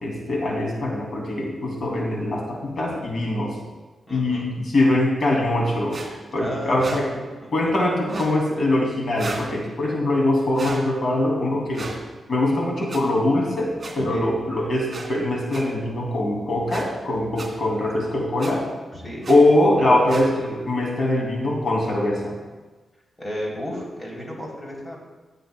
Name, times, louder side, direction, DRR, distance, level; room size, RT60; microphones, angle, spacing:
voice 1, 0.0-3.6 4.1-6.0 6.3-7.1 7.5-11.9 12.3-18.7 19.3-22.3, left 1 dB, 50° left, -2 dB, 2.6 m, -22 dB
voice 2, 4.1-4.5 6.4-6.8 7.1-7.2 14.0-14.3 18.9-19.3 23.2-25.0, equal, 20° left, -3 dB, 3.3 m, -33 dB
sound 1, 5.9-6.1 6.8-7.0 8.0-8.3 9.2-9.5 10.5-10.8 11.7-12.0 12.9-13.0 13.8-13.9 14.9-15.1 15.5-15.6 16.7-16.8 17.4-17.5 18.4-18.5 19.2-19.4 20.1-20.3, right 3 dB, 40° right, 2.8 m, -34 dB
16.0 x 7.4 x 2.3 m, 1.2 s
cardioid pair, 80°, 0 cm